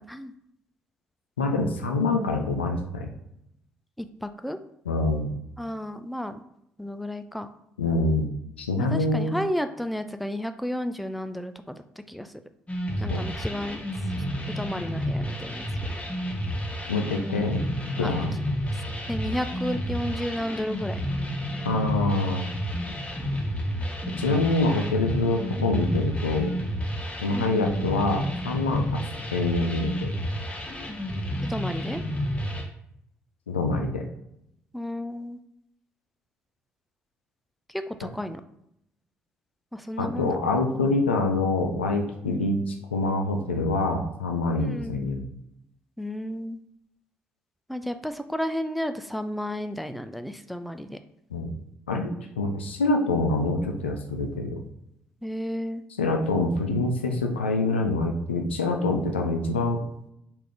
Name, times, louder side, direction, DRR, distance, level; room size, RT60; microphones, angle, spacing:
voice 1, 1.4-3.1 4.9-5.3 7.8-8.3 8.6-9.4 13.1-13.3 16.9-17.6 18.0-18.3 21.6-22.5 24.2-26.5 27.2-29.0 29.3-30.1 33.5-34.1 40.0-45.2 51.3-51.5 51.9-54.6 56.0-59.8, left 2 dB, 85° left, 3 dB, 0.4 m, -25 dB
voice 2, 4.0-4.6 5.6-6.4 6.8-7.5 8.8-12.3 13.0-13.8 14.5-15.6 18.0-18.1 18.7-21.0 27.3-27.6 31.4-32.0 34.7-35.4 37.7-38.4 39.7-40.4 42.2-42.5 44.6-45.0 46.0-46.6 47.7-51.0 55.2-55.8, equal, ahead, 9 dB, 0.3 m, -32 dB
sound 1, 12.7-32.6, equal, 20° left, 0.8 m, -31 dB
3.5 x 2.4 x 3.3 m, 0.77 s
figure-of-eight pair, 45°, 6 cm